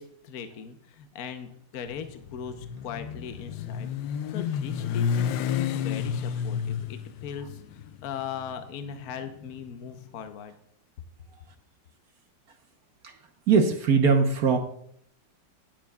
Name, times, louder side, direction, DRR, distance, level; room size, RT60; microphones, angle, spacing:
voice 1, 0.0-3.9 4.3-10.5, left 7 dB, 60° left, 8 dB, 1.2 m, -39 dB
Motorcycle, 1.9-10.1, left 8 dB, 85° left, 1.3 m, -31 dB
voice 2, 13.5-14.6, right 5 dB, 60° right, 5 dB, 1.3 m, -21 dB
17.5 x 7.4 x 2.3 m, 0.68 s
omnidirectional pair, 2.0 m